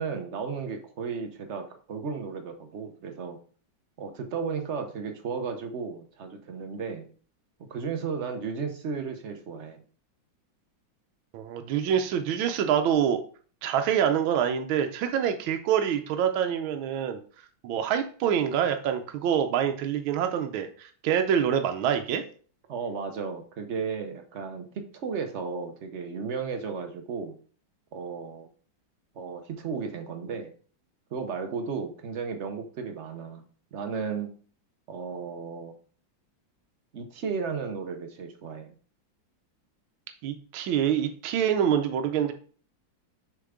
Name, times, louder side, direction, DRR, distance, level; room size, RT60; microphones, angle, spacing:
voice 1, 0.0-3.4 4.0-7.1 7.7-9.8 22.7-27.4 27.9-28.5 29.1-30.5 31.1-33.4 33.7-34.3 34.9-35.7 36.9-38.7, right 5 dB, 60° right, 6 dB, 0.7 m, -34 dB
voice 2, 11.3-13.2 13.6-17.2 17.6-22.2 40.2-42.3, right 8 dB, 85° right, 6 dB, 1.5 m, -26 dB
6.6 x 4.5 x 3.6 m, 0.42 s
omnidirectional pair, 2.2 m